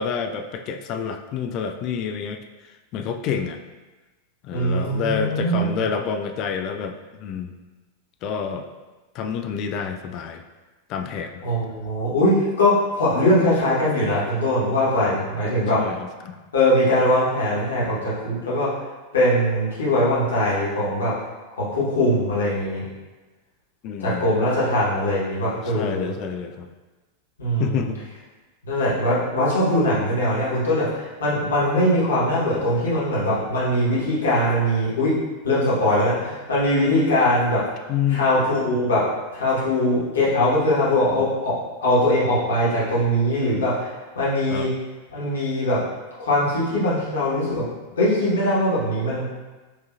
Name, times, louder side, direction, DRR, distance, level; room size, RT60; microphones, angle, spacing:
voice 1, 0.0-2.4 2.7-3.6 4.4-7.5 8.2-8.7 9.1-10.4 10.9-11.4 15.8-16.4 23.8-24.4 25.6-26.7 27.6-28.0 37.9-38.3 44.5-44.7, left 7 dB, 40° left, 6 dB, 0.3 m, -28 dB
voice 2, 4.5-5.7 11.4-15.8 16.5-18.7 19.1-21.1 21.6-22.8 24.0-26.1 27.4-27.9 28.6-35.1 35.4-37.6 38.1-39.0 39.3-41.5 41.8-43.9 44.1-44.7 45.1-45.8 46.2-47.6 48.0-49.3, left 1 dB, 65° left, -8 dB, 1.3 m, -21 dB
4.8 x 2.7 x 2.5 m, 1.2 s
figure-of-eight pair, 90°, 0 cm